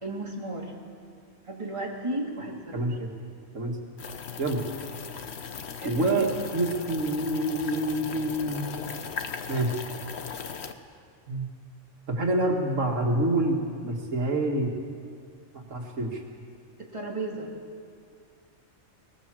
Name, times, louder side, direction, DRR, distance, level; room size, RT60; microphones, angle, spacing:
voice 1, 0.0-0.7 1.5-3.0 5.8-5.9 16.8-17.5, right 2 dB, 25° right, -2 dB, 2.8 m, -34 dB
voice 2, 2.7-3.1 3.5-3.8 4.4-4.6 5.8-8.9 9.5-9.7 11.3-11.5 12.1-14.7 15.5-16.2, right 1 dB, 90° right, 0 dB, 2.4 m, -27 dB
sound 1, 4.0-10.7, left 6 dB, 60° left, 1.2 m, -38 dB
20.5 x 18.5 x 7.6 m, 2.2 s
omnidirectional pair, 1.3 m